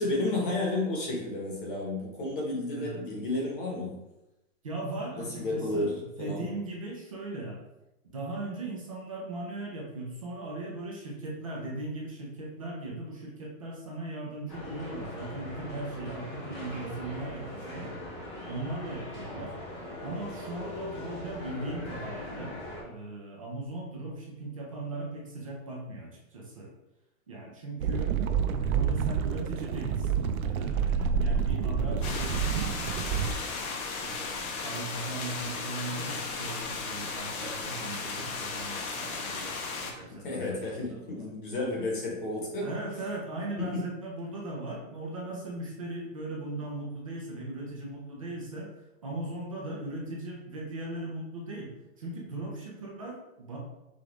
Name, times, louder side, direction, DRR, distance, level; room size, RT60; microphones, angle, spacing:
voice 1, 0.0-4.0 5.1-5.9 6.2-6.5 40.1-42.7 43.6-43.9, left 2 dB, 40° left, -2 dB, 1.0 m, -32 dB
voice 2, 4.6-7.6 8.0-17.9 18.5-19.5 20.0-22.6 22.8-26.7 27.3-28.1 28.6-32.7 32.9-33.4 34.0-41.2 42.6-48.7 49.0-51.7 52.0-53.6, right 2 dB, 25° right, -2 dB, 0.4 m, -38 dB
sound 1, 14.5-22.8, left 1 dB, 20° left, 0.6 m, -40 dB
sound 2, 27.8-33.3, right 7 dB, 80° right, 0.5 m, -28 dB
sound 3, 32.0-39.9, left 4 dB, 90° left, 1.0 m, -35 dB
5.0 x 2.5 x 3.0 m, 0.96 s
supercardioid pair, 175°, 42 cm